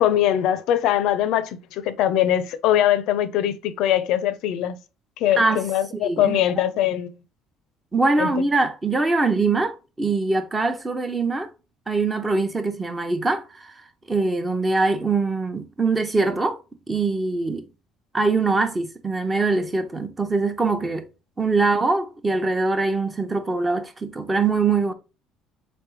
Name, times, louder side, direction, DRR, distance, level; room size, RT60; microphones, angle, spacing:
voice 1, 0.0-4.8 5.2-7.1 8.2-8.3, left 11 dB, 75° left, 0.4 m, -22 dB
voice 2, 6.0-6.4 7.9-11.5 11.9-13.7 14.1-16.6 16.9-17.6 18.1-21.1 21.4-24.9, right 3 dB, 20° right, 0.6 m, -23 dB
4.0 x 3.4 x 3.0 m
cardioid pair, 110°, 0 cm